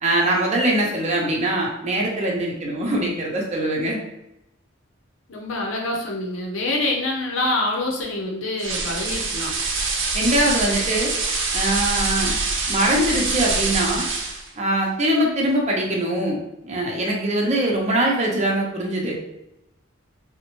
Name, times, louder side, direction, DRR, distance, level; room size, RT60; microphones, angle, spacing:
voice 1, 0.0-4.0 10.1-11.1 11.5-12.4 12.7-14.1 14.6-19.2, right 1 dB, 35° right, -1 dB, 0.8 m, -22 dB
voice 2, 5.3-9.5, left 2 dB, 85° left, 0 dB, 0.7 m, -26 dB
sound 1, 8.6-14.5, right 3 dB, 70° right, 0.6 m, -25 dB
3.9 x 2.1 x 3.0 m, 0.87 s
head